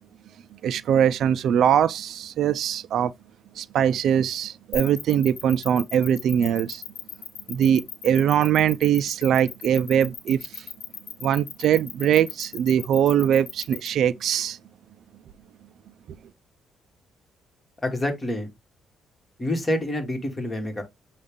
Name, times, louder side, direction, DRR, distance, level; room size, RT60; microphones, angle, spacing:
voice 1, 0.6-3.1 3.6-6.8 7.5-10.7 11.2-14.6, right 9 dB, 70° right, 0.3 m, -22 dB
sound 1, 4.7-13.9, left 9 dB, 90° left, 1.0 m, -36 dB
voice 2, 17.8-18.5 19.4-20.8, left 1 dB, 20° left, 1.6 m, -27 dB
6.2 x 2.4 x 3.6 m
cardioid pair, 90°, 0 cm